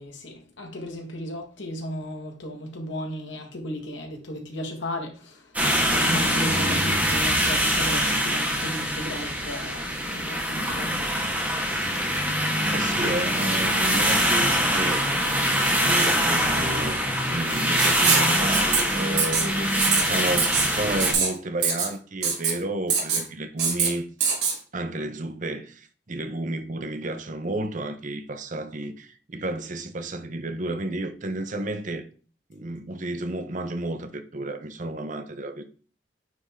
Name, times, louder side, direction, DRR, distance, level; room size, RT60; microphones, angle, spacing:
voice 1, 0.0-5.6 5.9-11.1, equal, 80° left, 1.7 m, -35 dB
sound 1, 5.5-21.1, equal, 10° right, 1.5 m, -24 dB
sound 2, 12.6-20.0, equal, 20° left, 0.8 m, -35 dB
voice 2, 12.7-15.0 15.4-24.1 24.7-32.1 32.5-35.6, right 2 dB, 40° right, 0.7 m, -31 dB
Writing, 17.8-18.3 18.5-18.8 19.2-19.5 19.8-20.0 20.4-20.7 21.0-21.3 21.6-21.9 22.2-22.5 22.9-23.2 23.6-23.9 24.2-24.5, right 6 dB, 60° right, 2.1 m, -23 dB
9.3 x 3.5 x 3.7 m
head